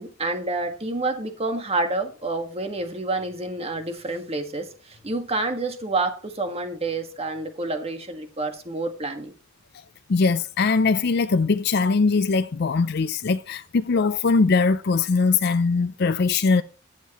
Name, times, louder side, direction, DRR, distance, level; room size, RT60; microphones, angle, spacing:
voice 1, 0.0-9.3, right 2 dB, 30° right, 1.7 m, -28 dB
voice 2, 10.1-16.6, left 4 dB, 55° left, 0.5 m, -21 dB
21.0 x 7.5 x 3.0 m
head